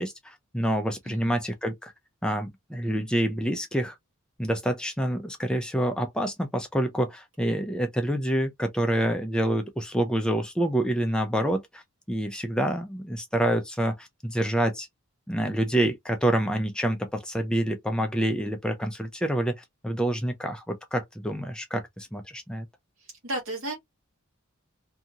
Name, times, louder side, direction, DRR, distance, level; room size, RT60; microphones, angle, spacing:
voice 1, 0.0-1.9 2.2-4.0 4.4-11.8 12.1-14.9 15.3-22.7, right 1 dB, 5° left, 0.4 m, -27 dB
voice 2, 23.2-23.7, right 1 dB, 70° right, 1.2 m, -33 dB
2.7 x 2.4 x 2.8 m
head